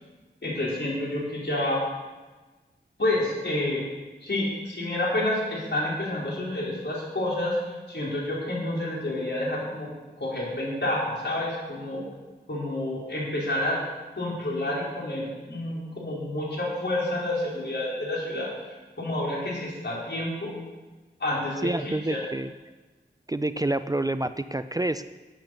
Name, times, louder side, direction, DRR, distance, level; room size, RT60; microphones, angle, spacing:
voice 1, 0.4-1.8 3.0-3.8 4.2-9.9 10.2-12.1 12.5-13.8 14.2-20.5 21.2-22.2, left 1 dB, 65° left, -5 dB, 4.8 m, -29 dB
voice 2, 21.6-22.5 23.3-25.1, right 2 dB, 20° right, 11 dB, 0.4 m, -28 dB
12.0 x 8.6 x 6.6 m, 1.2 s
wide cardioid pair, 65°, 19 cm